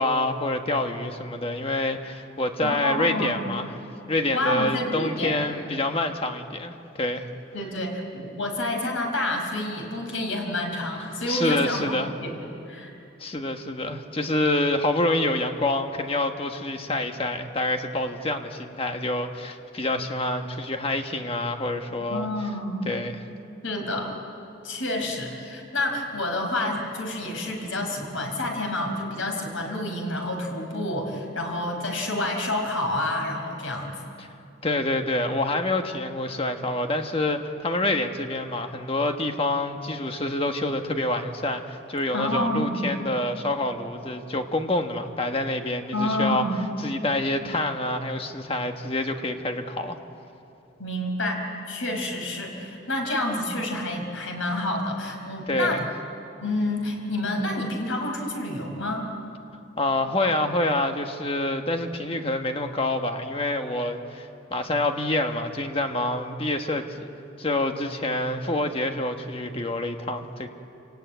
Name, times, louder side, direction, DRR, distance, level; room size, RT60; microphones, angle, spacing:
voice 1, 0.0-3.8 4.1-7.3 11.3-12.1 13.2-22.3 22.8-23.3 34.2-34.3 34.6-46.4 46.8-50.0 55.5-55.8 59.8-67.1 67.4-70.5, left 2 dB, 30° left, 5 dB, 1.3 m, -27 dB
voice 2, 2.6-3.4 4.3-5.3 7.5-11.8 12.2-12.9 21.9-22.9 23.6-24.1 24.6-34.0 42.1-42.8 45.9-46.6 50.8-55.8 56.4-59.1, left 1 dB, 90° left, 2 dB, 5.0 m, -29 dB
28.5 x 18.0 x 9.2 m, 2.8 s
head